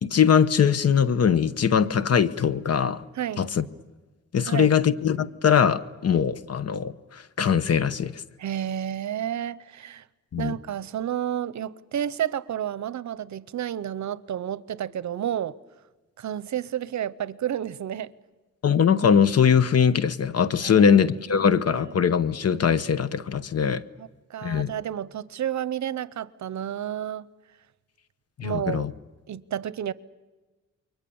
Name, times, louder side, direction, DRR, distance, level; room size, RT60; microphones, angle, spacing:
voice 1, 0.0-3.0 3.4-3.7 4.3-8.2 10.3-10.6 18.6-23.8 24.4-24.7 28.4-28.9, left 7 dB, 55° left, 1.1 m, -21 dB
voice 2, 8.4-10.0 10.4-15.6 16.2-18.1 20.6-21.0 21.3-21.9 24.0-27.2 28.4-28.8 29.3-29.9, right 10 dB, 75° right, 0.8 m, -31 dB
29.0 x 23.5 x 7.1 m
wide cardioid pair, 120°, 29 cm